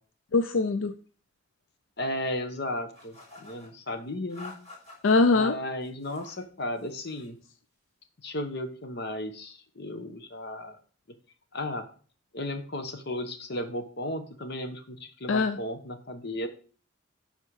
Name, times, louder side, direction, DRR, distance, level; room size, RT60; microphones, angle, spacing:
voice 1, 0.3-0.9 5.0-5.6 15.3-15.6, left 3 dB, 75° left, 10 dB, 0.5 m, -22 dB
voice 2, 2.0-3.1 3.4-4.5 5.3-7.4 8.2-10.8 11.5-11.9 12.3-16.5, left 1 dB, 55° left, 8 dB, 1.2 m, -34 dB
sound 1, 2.9-3.7 4.3-5.2 5.8-6.4 6.8-7.4, left 3 dB, 35° left, 3.5 m, -49 dB
11.5 x 4.4 x 4.8 m, 0.42 s
head